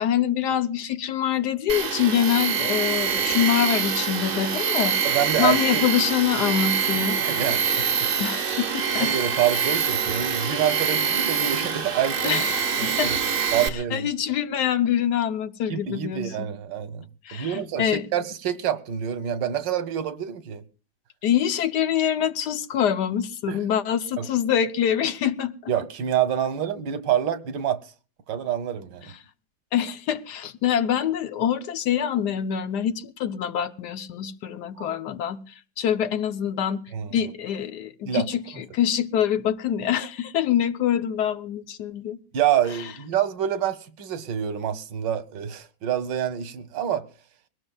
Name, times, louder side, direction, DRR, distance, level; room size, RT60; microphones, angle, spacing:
voice 1, 0.0-5.0 5.4-7.2 8.2-9.1 12.2-13.1 13.9-16.5 17.2-18.1 21.2-25.5 29.7-35.4 35.8-36.8 37.1-42.2, left 9 dB, 70° left, 1.4 m, -25 dB
Tools, 1.7-13.7, right 7 dB, 40° right, 1.0 m, -25 dB
voice 2, 5.0-5.8 7.2-8.1 9.0-12.4 12.8-13.2 13.5-14.1 15.7-17.0 17.3-20.6 23.5-23.6 24.2-24.3 25.7-27.9 28.3-29.1 34.8-35.0 36.9-37.2 38.1-38.3 42.3-47.1, right 9 dB, 90° right, 1.7 m, -27 dB
22.5 x 18.0 x 2.3 m
omnidirectional pair, 1.9 m